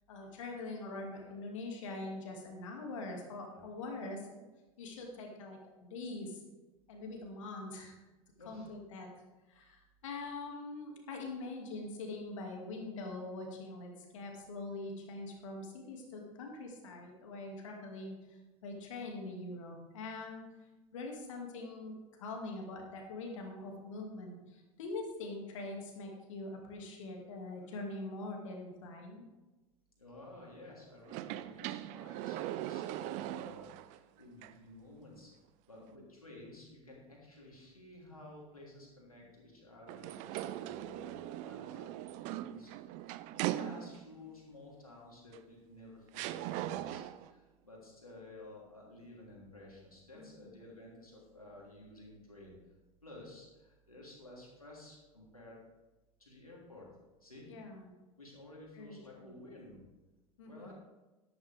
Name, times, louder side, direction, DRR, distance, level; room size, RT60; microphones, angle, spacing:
voice 1, 0.1-4.4 4.8-6.4 6.9-8.0 8.5-9.1 9.5-20.6 20.9-29.2 50.1-50.5 57.5-58.0 58.7-59.3 60.4-60.7, left 2 dB, 65° left, 1 dB, 2.3 m, -43 dB
voice 2, 8.4-8.7 30.0-35.3 35.7-52.6 53.0-55.6 56.2-56.9 57.2-57.5 58.2-59.8 60.4-60.7, left 1 dB, 85° left, -3 dB, 3.2 m, -53 dB
sound 1, 31.1-34.0 34.4-34.5 39.9-44.2 45.3-45.4 46.1-47.3, right 14 dB, 40° right, 0.5 m, -40 dB
11.5 x 11.5 x 3.5 m, 1.1 s
figure-of-eight pair, 80°, 18 cm